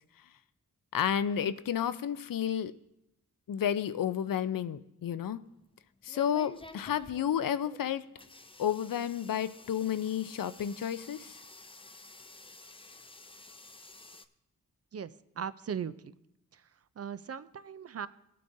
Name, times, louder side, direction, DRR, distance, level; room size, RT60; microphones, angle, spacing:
voice 1, 0.9-2.7 3.5-5.4 6.0-8.0 8.6-11.4, left 9 dB, 75° left, 14 dB, 0.5 m, -31 dB
sound 1, 5.5-14.2, left 3 dB, 15° left, 0.5 m, -52 dB
voice 2, 15.4-16.1 16.5-16.7 17.0-18.1, right 7 dB, 45° right, 14 dB, 0.4 m, -38 dB
17.5 x 8.5 x 2.6 m, 0.86 s
wide cardioid pair, 75°, 34 cm